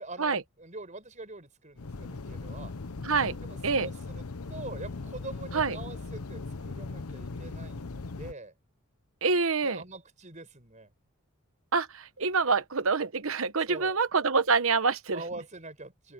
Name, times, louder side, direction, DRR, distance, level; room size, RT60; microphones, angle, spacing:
voice 1, 0.0-2.7 3.4-8.5 9.6-10.9 13.7-14.0 15.1-16.1, right 2 dB, 35° right, 5.2 m, -44 dB
sound 1, 1.8-8.3, left 3 dB, 85° left, 0.9 m, -39 dB
voice 2, 3.0-3.4 3.6-3.9 5.5-5.8 9.2-9.8 11.7-15.2, right 4 dB, 65° right, 1.1 m, -26 dB
open air
head